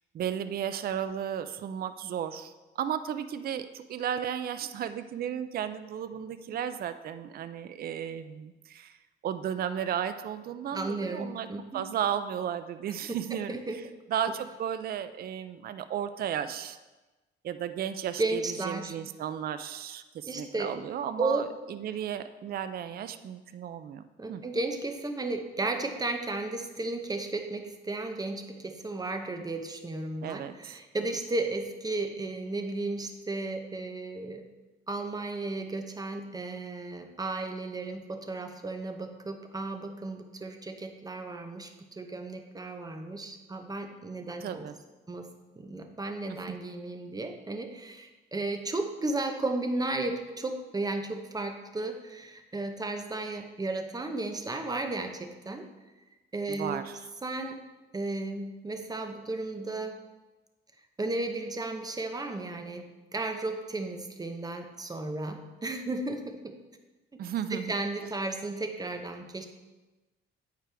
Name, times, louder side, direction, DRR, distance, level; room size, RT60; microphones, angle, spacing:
voice 1, 0.1-9.0 9.2-11.5 11.7-13.6 14.1-16.8 17.4-24.0 24.3-24.4 30.2-30.8 44.4-44.8 46.5-46.6 56.5-57.1 67.2-67.7, right 9 dB, 50° right, 11 dB, 0.4 m, -34 dB
voice 2, 10.7-11.8 13.1-13.2 13.5-13.8 18.2-19.0 20.3-20.7 21.2-21.4 24.2-34.4 34.9-44.7 45.1-45.3 45.6-55.7 56.3-56.9 57.2-57.6 57.9-60.0 61.0-66.5 67.5-69.5, right 2 dB, 20° right, 5 dB, 0.8 m, -34 dB
8.9 x 4.9 x 3.4 m, 1.1 s
cardioid pair, 90°, 20 cm